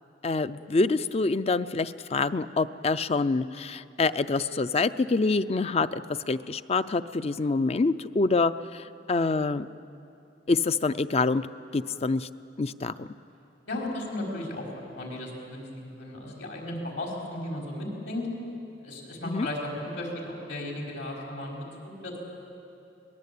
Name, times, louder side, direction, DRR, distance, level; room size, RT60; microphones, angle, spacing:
voice 1, 0.2-6.0 6.3-9.7 10.5-11.5 11.7-12.3 12.6-13.1 19.2-19.5, left 3 dB, 35° left, 13 dB, 0.5 m, -26 dB
voice 2, 13.7-14.7 14.9-18.3 18.8-22.2, left 1 dB, 70° left, -1 dB, 4.9 m, -35 dB
22.5 x 20.0 x 8.5 m, 2.7 s
head